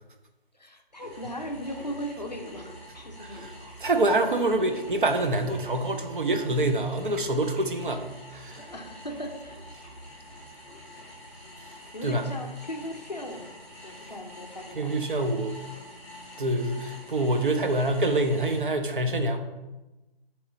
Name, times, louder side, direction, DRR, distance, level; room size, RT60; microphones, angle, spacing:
voice 1, 0.5-3.4 8.6-9.6 11.9-13.5 13.8-15.1, equal, 45° left, 4 dB, 0.4 m, -38 dB
sound 1, 0.9-18.6, left 1 dB, 15° left, 1.2 m, -46 dB
voice 2, 3.2-8.7 12.0-12.3 14.8-15.6 16.4-19.4, right 2 dB, 55° right, 6 dB, 0.5 m, -26 dB
3.5 x 3.0 x 4.1 m, 1.1 s
figure-of-eight pair, 175°, 31 cm